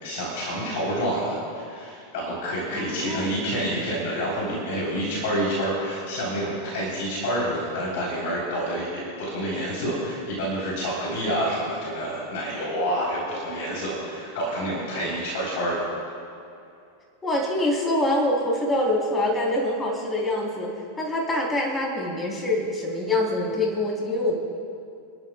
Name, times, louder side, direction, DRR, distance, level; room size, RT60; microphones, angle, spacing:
voice 1, 0.0-15.8, equal, 50° left, -5 dB, 3.8 m, -28 dB
voice 2, 2.7-3.3 17.2-20.7 21.0-24.3, left 1 dB, 15° left, -2 dB, 3.7 m, -25 dB
29.0 x 12.0 x 2.4 m, 2.5 s
figure-of-eight pair, 90°, 0 cm